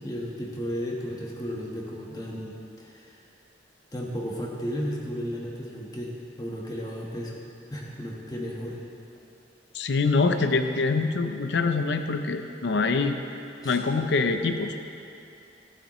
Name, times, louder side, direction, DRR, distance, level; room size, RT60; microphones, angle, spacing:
voice 1, 0.0-3.2 3.9-7.3 7.7-8.8 13.6-13.8, equal, 20° left, -2 dB, 1.3 m, -34 dB
voice 2, 9.7-13.2 13.6-14.8, left 4 dB, 75° left, 7 dB, 0.5 m, -24 dB
15.5 x 8.0 x 3.1 m, 2.8 s
head